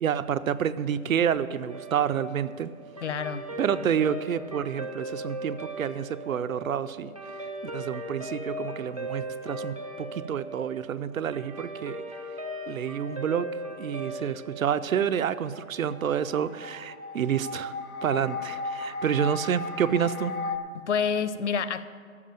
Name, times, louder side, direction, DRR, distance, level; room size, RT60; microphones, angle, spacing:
voice 1, 0.0-2.7 3.6-7.1 7.6-12.0 12.7-17.7 18.0-20.4, right 8 dB, 75° right, 14 dB, 0.6 m, -29 dB
Guitar, 1.7-16.3, right 1 dB, 25° right, 0.4 m, -39 dB
voice 2, 3.0-3.5 20.7-21.8, left 6 dB, 55° left, 14 dB, 0.6 m, -28 dB
sound 1, 15.5-20.6, left 2 dB, 90° left, 1.2 m, -35 dB
14.5 x 5.1 x 9.0 m, 2.1 s
hypercardioid pair, 165°, 41 cm